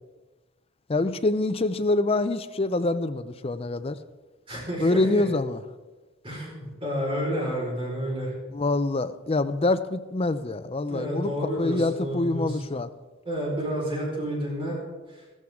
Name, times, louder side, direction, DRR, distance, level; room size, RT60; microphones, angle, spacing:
voice 1, 0.9-4.0 4.8-5.6 8.5-11.3 11.6-12.9, left 2 dB, 30° left, 11 dB, 0.5 m, -25 dB
voice 2, 4.5-5.2 6.2-8.3 10.8-12.6 13.2-14.8 15.1-15.2, equal, 25° right, -4 dB, 4.4 m, -30 dB
14.5 x 14.5 x 3.6 m, 1.3 s
head